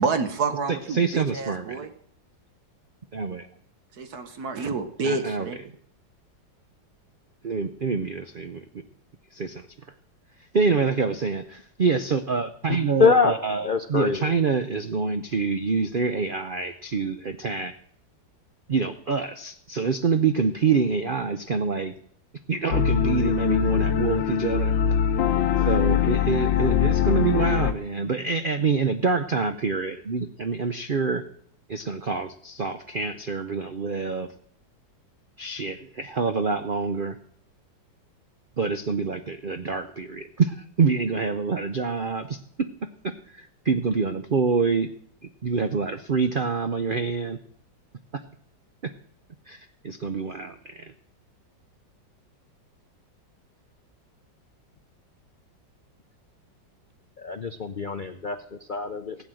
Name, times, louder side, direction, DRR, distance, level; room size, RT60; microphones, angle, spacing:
voice 1, 0.0-1.9 4.0-5.6, right 4 dB, 60° right, 9 dB, 1.5 m, -28 dB
voice 2, 0.7-1.9 3.1-3.5 5.0-5.5 7.4-8.6 9.3-9.6 10.5-17.8 18.7-21.9 22.5-24.7 25.7-31.2 31.7-34.3 35.4-37.2 38.6-42.7 43.0-44.9 45.4-47.4 48.1-48.2 48.8-48.9 49.5-50.9, right 5 dB, 85° right, 9 dB, 0.4 m, -26 dB
voice 3, 12.7-13.3 13.6-14.3 57.2-58.4 58.7-59.2, left 5 dB, 70° left, 8 dB, 0.4 m, -24 dB
sound 1, 22.7-27.7, left 9 dB, 90° left, 1.5 m, -22 dB
15.5 x 8.6 x 7.6 m, 0.64 s
omnidirectional pair, 2.0 m